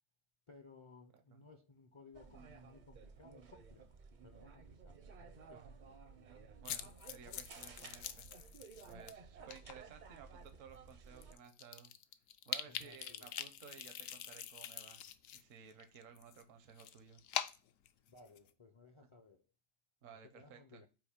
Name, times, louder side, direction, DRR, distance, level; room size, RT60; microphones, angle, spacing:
voice 1, 0.5-3.8 4.2-6.0 7.3-7.4 12.7-13.3 18.1-19.4 20.3-20.9, left 4 dB, 40° left, 0.4 m, -60 dB
voice 2, 1.1-1.4 5.4-5.7 6.6-8.3 8.9-11.9 12.5-15.0 15.3-17.2 20.0-20.8, right 7 dB, 70° right, 1.1 m, -57 dB
sound 1, 2.1-11.3, right 5 dB, 50° right, 0.6 m, -56 dB
sound 2, 6.6-9.1 9.5-9.7 10.5-10.6 10.9-11.0 11.2-15.4 15.7-18.5, left 10 dB, 75° left, 1.0 m, -44 dB
8.7 x 3.0 x 5.0 m
omnidirectional pair, 1.4 m